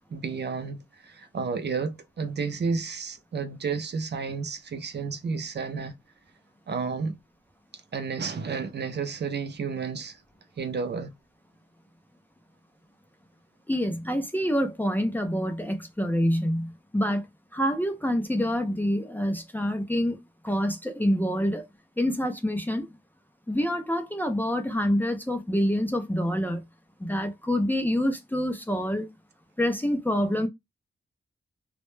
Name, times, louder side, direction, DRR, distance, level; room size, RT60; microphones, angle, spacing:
voice 1, 0.1-0.8 1.0-5.9 6.7-7.2 7.9-10.2 10.6-11.1, right 5 dB, 55° right, 0.4 m, -31 dB
voice 2, 13.7-17.2 17.5-20.2 20.4-21.6 22.0-22.9 23.5-26.6 27.0-29.1 29.6-30.5, equal, 10° left, 0.4 m, -26 dB
2.1 x 2.0 x 3.0 m
wide cardioid pair, 160°, 21 cm